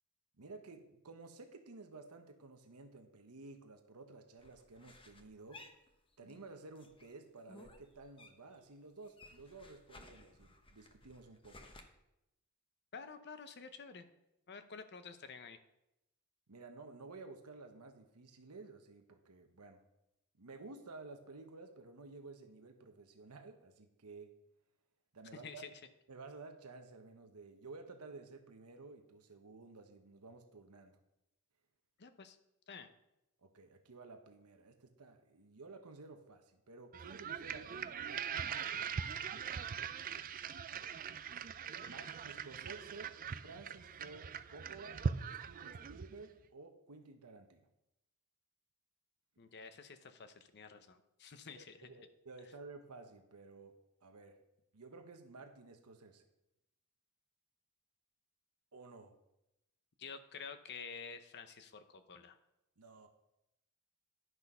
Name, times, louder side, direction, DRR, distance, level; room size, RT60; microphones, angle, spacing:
voice 1, 0.4-5.6 6.2-11.6 16.5-19.8 20.4-24.3 25.1-25.6 26.1-31.0 33.4-38.9 41.8-43.1 43.4-45.0 45.3-47.7 51.6-53.7 54.0-54.4 54.7-56.3 58.7-59.2 62.8-63.1, right 3 dB, 85° right, 5 dB, 1.0 m, -53 dB
sound 1, 4.4-6.5 6.8-8.6 8.9-11.8, left 2 dB, 25° left, 1.0 m, -58 dB
voice 2, 12.9-14.1 14.5-15.6 25.3-25.7 32.0-32.4 32.7-32.9 41.8-42.1 49.4-51.9 60.0-62.4, left 5 dB, 50° left, 9 dB, 0.8 m, -50 dB
sound 2, 36.9-46.2, right 6 dB, 40° right, 0.4 m, -41 dB
11.0 x 6.2 x 5.5 m, 0.88 s
head